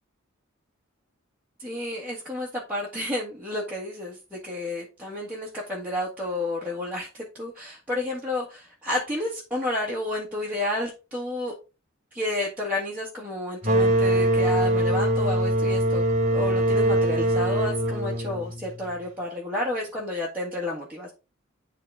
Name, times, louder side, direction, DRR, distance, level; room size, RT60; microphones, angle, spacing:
voice 1, 1.6-11.5 12.1-16.0 16.3-21.1, left 1 dB, 10° right, -6 dB, 1.7 m, -31 dB
sound 1, 13.6-19.1, right 1 dB, 35° right, 1.6 m, -23 dB
10.5 x 3.8 x 3.6 m, 0.30 s
head